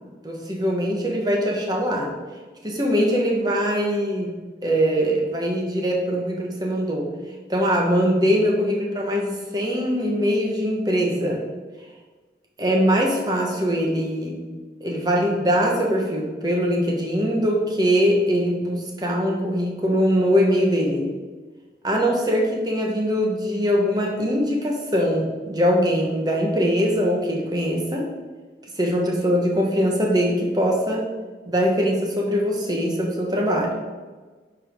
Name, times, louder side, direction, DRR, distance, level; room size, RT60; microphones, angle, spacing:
voice 1, 0.0-2.1 2.6-4.3 4.6-7.1 7.5-11.4 12.6-14.4 14.8-21.1 21.8-28.1 28.8-31.1 31.4-33.7, equal, 25° right, 0 dB, 1.1 m, -22 dB
9.4 x 5.0 x 3.6 m, 1.3 s
head